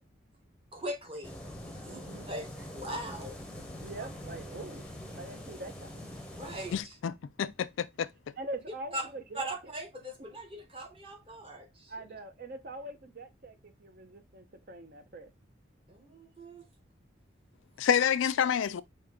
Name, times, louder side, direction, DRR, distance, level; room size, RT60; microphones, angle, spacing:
voice 1, 0.7-1.3 1.7-3.4 4.0-4.1 6.3-7.0 8.9-12.1 15.9-16.7, right 1 dB, 30° right, 1.0 m, -41 dB
sound 1, 1.2-6.8, left 1 dB, 5° left, 0.7 m, -44 dB
voice 2, 1.8-2.3 3.8-4.8 5.1-6.1 8.4-9.5 11.9-13.5 13.8-15.3, right 2 dB, 50° right, 0.6 m, -43 dB
voice 3, 6.7-7.1 7.4-8.1 17.8-18.8, left 8 dB, 80° left, 0.3 m, -28 dB
5.0 x 2.7 x 3.5 m
head